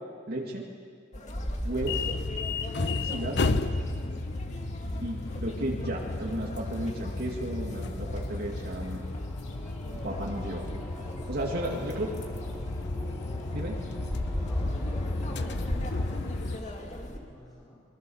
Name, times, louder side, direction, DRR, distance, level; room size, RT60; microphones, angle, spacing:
voice 1, 0.3-0.6 1.6-2.0 3.0-3.6 5.0-9.0 10.0-10.7 11.3-12.1 13.5-13.8, right 1 dB, 55° right, -1 dB, 2.3 m, -34 dB
sound 1, 1.1-17.2, equal, 35° left, 2.5 m, -39 dB
sound 2, 1.8-16.6, left 2 dB, 60° left, 1.0 m, -33 dB
sound 3, 8.3-16.7, right 1 dB, 5° left, 1.7 m, -48 dB
voice 2, 11.5-12.0 14.5-17.8, left 1 dB, 20° left, -8 dB, 4.8 m, -49 dB
24.5 x 23.0 x 7.2 m, 2.1 s
head